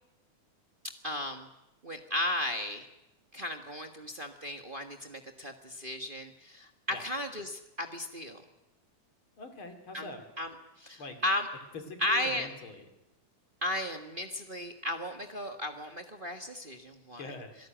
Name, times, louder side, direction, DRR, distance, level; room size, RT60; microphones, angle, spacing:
voice 1, 1.0-1.5 1.8-2.9 3.3-6.7 7.0-8.4 9.9-10.1 10.4-10.5 10.8-11.5 12.0-12.5 13.6-17.2, left 1 dB, 50° right, 4 dB, 0.6 m, -35 dB
voice 2, 9.4-10.2 11.0-11.2 11.7-12.8 17.2-17.6, left 3 dB, 45° left, 6 dB, 3.3 m, -43 dB
26.0 x 18.0 x 9.1 m, 0.91 s
omnidirectional pair, 3.5 m